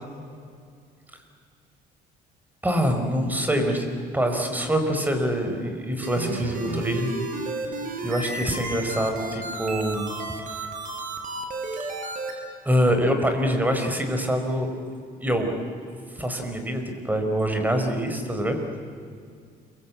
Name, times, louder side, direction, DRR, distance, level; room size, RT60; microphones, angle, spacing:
voice 1, 2.6-7.1 8.0-10.1 12.6-14.7 15.2-15.5 15.9-18.6, equal, 10° right, 5 dB, 5.0 m, -25 dB
sound 1, 6.0-12.3, right 3 dB, 50° right, 5.8 m, -32 dB
29.0 x 23.0 x 8.7 m, 2.2 s
cardioid pair, 110°, 17 cm